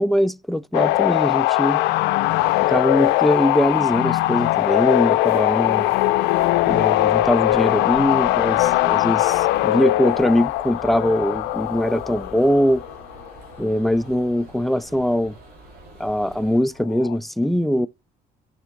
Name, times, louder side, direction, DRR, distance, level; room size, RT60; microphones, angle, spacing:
voice 1, 0.0-1.8 2.7-5.9 6.7-12.8 13.6-15.3 16.0-17.9, equal, ahead, 0.3 m, -21 dB
sound 1, 0.7-13.1 16.9-17.2, left 17 dB, 90° left, 0.4 m, -20 dB
sound 2, 2.1-16.8, right 2 dB, 20° right, 2.7 m, -52 dB
sound 3, 6.3-16.6, right 1 dB, 65° right, 3.2 m, -44 dB
14.0 x 5.3 x 2.2 m
cardioid pair, 110°, 17 cm